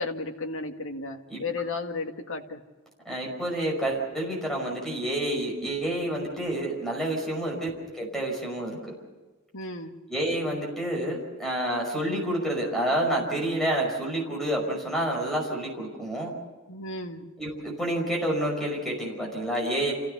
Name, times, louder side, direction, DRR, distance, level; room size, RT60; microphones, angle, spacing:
voice 1, 0.0-2.6 9.5-10.0 16.7-17.3, left 3 dB, 65° left, 4 dB, 2.0 m, -34 dB
voice 2, 3.1-7.7 8.0-8.9 10.1-16.3 17.4-19.9, right 1 dB, ahead, -1 dB, 5.6 m, -29 dB
28.5 x 16.5 x 6.9 m, 1.3 s
head